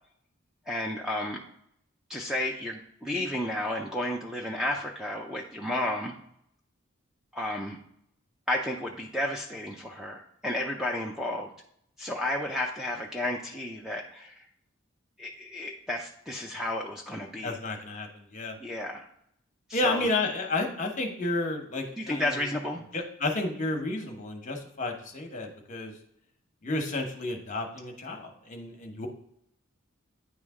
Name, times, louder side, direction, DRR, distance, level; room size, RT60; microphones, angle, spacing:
voice 1, 0.7-1.4 2.1-6.1 7.3-7.8 8.5-11.5 12.0-14.3 15.2-17.6 18.6-19.1 19.7-20.1 22.0-22.8, left 1 dB, ahead, 0 dB, 0.4 m, -32 dB
voice 2, 17.4-18.6 19.7-22.5 22.9-25.9 26.6-29.1, left 2 dB, 35° left, 3 dB, 1.0 m, -31 dB
9.4 x 3.3 x 3.5 m, 0.72 s
head